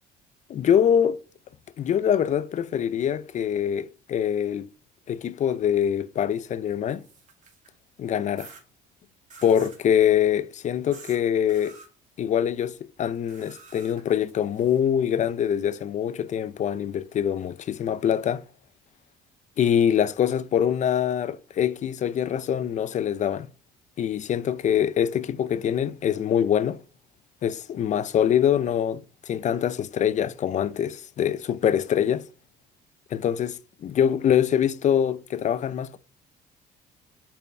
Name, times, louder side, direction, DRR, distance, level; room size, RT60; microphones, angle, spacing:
voice 1, 0.5-1.2 1.8-4.7 5.1-7.0 8.0-8.5 9.4-11.8 12.2-18.4 19.6-23.5 24.0-26.8 27.4-32.3 33.1-36.0, left 9 dB, 45° left, 0.5 m, -24 dB
sound 1, 6.7-7.8 8.4-8.6 9.3-9.8 10.9-11.2 11.5-11.9 13.3-14.8, right 4 dB, 45° right, 2.3 m, -48 dB
5.3 x 4.4 x 4.5 m
cardioid pair, 110°, 17 cm